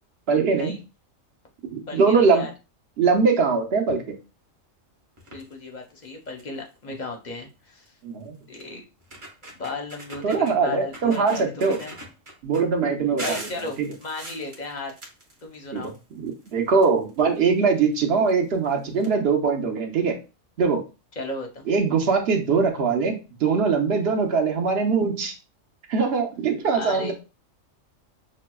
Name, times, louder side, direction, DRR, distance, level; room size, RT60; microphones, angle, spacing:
voice 1, 0.3-0.7 1.7-2.5 3.0-4.0 8.0-8.4 10.2-11.8 12.4-13.4 15.7-15.9 16.2-20.2 20.6-20.8 21.7-25.3 25.9-27.1, right 5 dB, 55° right, 3 dB, 1.0 m, -22 dB
voice 2, 1.9-2.5 5.3-7.9 8.5-8.8 9.6-12.0 13.2-15.0 15.4-15.9 21.2-21.7 26.7-27.1, left 3 dB, 40° left, 2 dB, 0.7 m, -35 dB
sound 1, 5.2-5.5 6.0-6.1 6.4-6.7 7.9-8.0 8.6-8.7 9.0-10.5 10.9-12.6 13.2-16.0 16.3-17.4 18.3-18.4 18.6-18.7 19.0-19.1, right 1 dB, 25° right, 0.9 m, -40 dB
6.2 x 2.1 x 2.2 m, 0.29 s
omnidirectional pair, 1.3 m